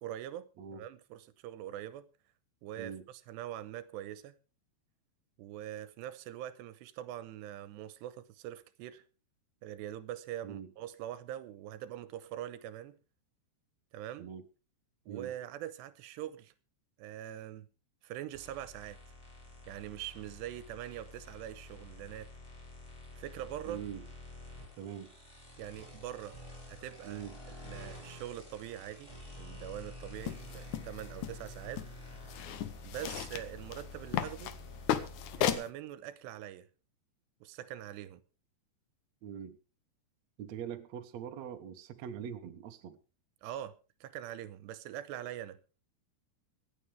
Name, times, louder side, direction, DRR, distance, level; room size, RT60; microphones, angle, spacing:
voice 1, 0.0-2.1 2.6-4.3 5.4-9.0 9.6-13.0 13.9-14.3 15.1-16.5 17.0-17.7 18.0-19.0 19.7-22.3 23.1-23.8 25.6-26.4 26.7-29.1 29.4-31.8 32.8-34.6 35.4-36.7 37.4-38.2 43.4-45.6, right 12 dB, 90° right, 3.0 m, -43 dB
sound 1, 18.3-35.5, left 1 dB, 5° left, 6.8 m, -49 dB
voice 2, 23.6-24.0 24.8-25.1 27.0-27.4 39.2-39.6 40.4-43.0, right 8 dB, 65° right, 1.7 m, -43 dB
sound 2, 30.2-35.7, left 11 dB, 80° left, 1.7 m, -36 dB
25.5 x 9.2 x 3.4 m
omnidirectional pair, 4.8 m